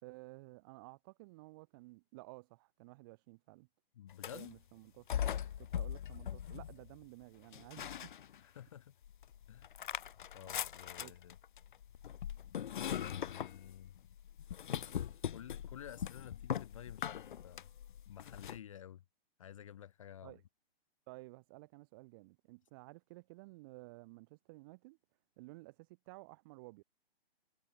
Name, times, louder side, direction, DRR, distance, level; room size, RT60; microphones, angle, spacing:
voice 1, 0.0-3.7 4.3-5.1 5.6-8.1 10.4-10.5 11.0-11.2 20.2-20.4 21.1-25.0 25.4-26.8, right 24 dB, 20° right, 1.4 m, -54 dB
voice 2, 3.9-4.5 8.4-8.9 9.5-9.7 10.3-11.4 13.0-13.9 15.3-17.7 18.1-19.0 19.4-20.4, left 10 dB, 35° left, 0.6 m, -52 dB
sound 1, 4.1-4.6 5.1-7.0 7.5-8.6 9.0-18.6, left 9 dB, 55° left, 1.0 m, -41 dB
hypercardioid pair, 165°, 30 cm